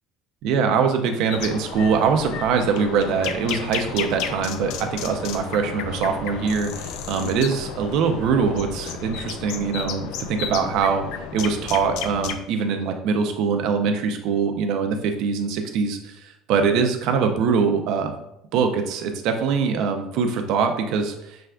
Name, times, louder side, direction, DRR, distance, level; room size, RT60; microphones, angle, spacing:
voice 1, 0.4-11.0 11.3-18.1 18.5-21.5, right 5 dB, 65° right, 5 dB, 0.7 m, -23 dB
sound 1, 1.3-12.4, left 7 dB, 75° left, 0.4 m, -32 dB
6.3 x 3.3 x 2.4 m, 0.81 s
cardioid pair, 145°, 0 cm